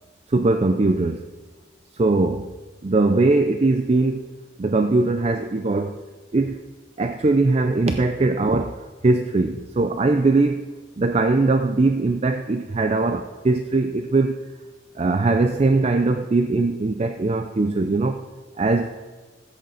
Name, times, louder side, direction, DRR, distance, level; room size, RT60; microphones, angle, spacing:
voice 1, 0.3-1.2 1.9-2.5 2.8-4.3 4.6-6.0 6.3-6.7 7.0-14.4 15.0-18.2 18.6-18.9, right 3 dB, 30° right, 7 dB, 0.4 m, -21 dB
15.0 x 7.9 x 3.9 m, 1.4 s
head